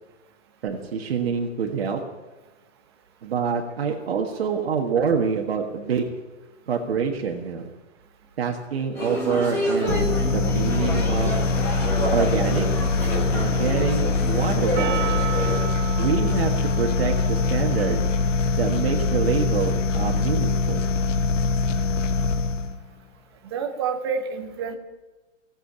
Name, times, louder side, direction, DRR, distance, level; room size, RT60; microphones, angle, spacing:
voice 1, 0.6-2.0 3.2-6.1 6.7-7.7 8.4-11.4 12.1-12.7 13.3-15.1 16.0-18.0 18.6-20.8, right 6 dB, 50° right, 1 dB, 1.6 m, -26 dB
sound 1, 9.0-15.6, equal, 5° left, 1.2 m, -29 dB
sound 2, 9.9-22.8, left 4 dB, 70° left, 1.2 m, -23 dB
Percussion, 14.8-19.1, right 13 dB, 65° right, 0.8 m, -35 dB
voice 2, 23.5-24.8, right 6 dB, 20° right, 5 dB, 1.0 m, -28 dB
17.5 x 7.7 x 8.7 m, 1.2 s
hypercardioid pair, 175°, 39 cm